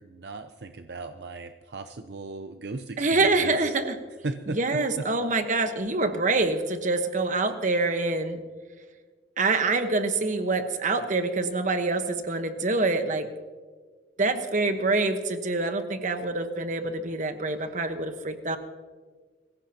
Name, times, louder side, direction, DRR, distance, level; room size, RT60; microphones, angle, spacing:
voice 1, 0.0-3.8 4.2-5.1 17.6-17.7, right 3 dB, 65° right, 8 dB, 0.6 m, -37 dB
voice 2, 3.0-4.0 4.5-8.4 9.4-13.3 14.2-18.6, right 3 dB, 45° right, 8 dB, 1.2 m, -26 dB
23.5 x 15.5 x 2.9 m, 1.5 s
head